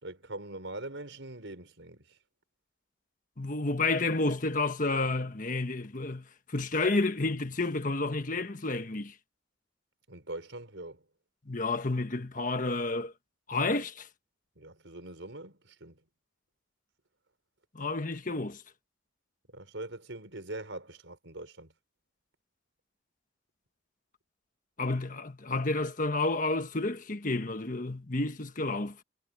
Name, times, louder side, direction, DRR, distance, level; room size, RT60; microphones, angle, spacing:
voice 1, 0.0-2.2 10.1-11.0 14.6-16.0 19.5-21.7, right 2 dB, 75° right, 4.6 m, -42 dB
voice 2, 3.4-9.1 11.5-13.1 13.5-14.1 17.7-18.6 24.8-29.0, left 2 dB, 45° left, 1.4 m, -30 dB
head